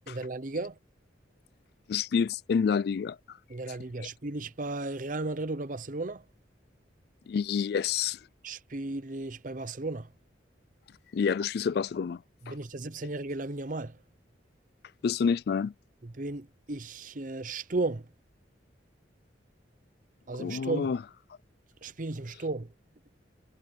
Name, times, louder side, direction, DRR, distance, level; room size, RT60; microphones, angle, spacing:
voice 1, 0.1-0.8 3.5-6.2 8.4-10.1 12.4-14.0 16.0-18.1 20.3-20.9 21.8-22.7, right 2 dB, 45° right, 0.8 m, -35 dB
voice 2, 1.9-3.2 7.3-8.2 11.1-12.2 12.5-12.6 15.0-15.7 20.4-21.0, left 6 dB, 55° left, 0.3 m, -28 dB
head